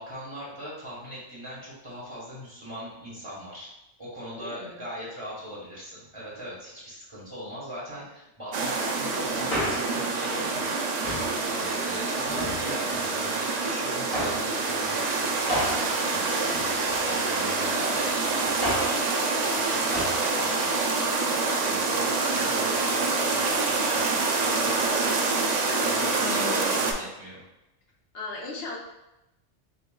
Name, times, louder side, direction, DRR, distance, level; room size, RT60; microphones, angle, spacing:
voice 1, 0.0-3.7 4.0-10.8 11.5-16.6 17.0-19.0 19.4-20.9 21.6-25.3 25.8-27.4, equal, 25° right, -8 dB, 1.4 m, -40 dB
voice 2, 4.4-4.8 17.5-18.0 26.1-26.8 28.1-28.8, left 2 dB, 60° left, -2 dB, 1.0 m, -37 dB
sound 1, 8.5-26.9, right 3 dB, 65° right, 0.4 m, -26 dB
Male speech man speaking, 9.3-10.1 11.0-11.4 12.2-13.0 14.1-14.5 15.5-17.1 18.4-19.0 19.9-20.2 20.5-20.6, equal, 40° left, 1.3 m, -32 dB
6.5 x 2.3 x 2.2 m, 0.90 s
omnidirectional pair, 1.2 m